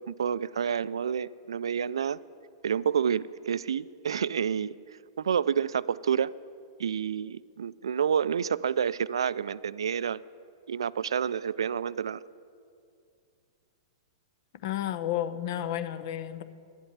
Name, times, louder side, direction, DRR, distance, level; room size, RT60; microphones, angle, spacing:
voice 1, 0.1-2.2 2.6-4.8 5.2-6.3 6.8-10.2 10.7-12.2, right 7 dB, 80° right, 19 dB, 0.3 m, -29 dB
voice 2, 14.6-16.4, left 11 dB, 60° left, 12 dB, 0.8 m, -31 dB
11.5 x 8.1 x 9.4 m, 2.4 s
hypercardioid pair, 115°, 3 cm